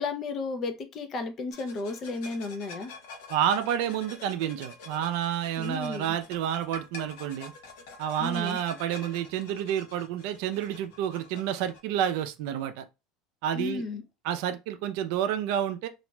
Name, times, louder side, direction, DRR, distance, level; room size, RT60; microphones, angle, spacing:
voice 1, 0.0-2.9 5.6-6.2 8.2-8.6 13.5-14.0, left 3 dB, 35° left, 0.5 m, -33 dB
sound 1, 1.5-11.8, left 3 dB, 80° left, 0.8 m, -47 dB
voice 2, 3.3-7.5 8.0-12.8 13.4-13.8 14.2-15.9, right 10 dB, 70° right, 0.5 m, -29 dB
3.0 x 2.4 x 2.2 m
cardioid pair, 150°, 0 cm